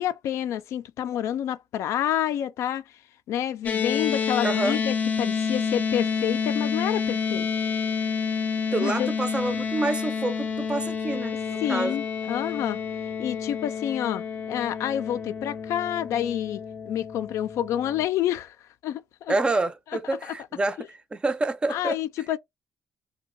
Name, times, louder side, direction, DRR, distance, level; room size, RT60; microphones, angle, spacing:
voice 1, 0.0-2.8 3.3-7.5 8.8-9.1 11.6-12.8 13.2-16.6 16.9-18.6 18.8-19.3 20.2-20.3 21.7-22.4, left 11 dB, 85° left, 0.4 m, -28 dB
sound 1, 3.7-18.1, left 6 dB, 35° left, 0.5 m, -29 dB
voice 2, 4.4-4.8 8.7-12.0 19.3-22.0, right 2 dB, 20° right, 0.4 m, -28 dB
2.7 x 2.2 x 3.7 m
cardioid pair, 130°, 5 cm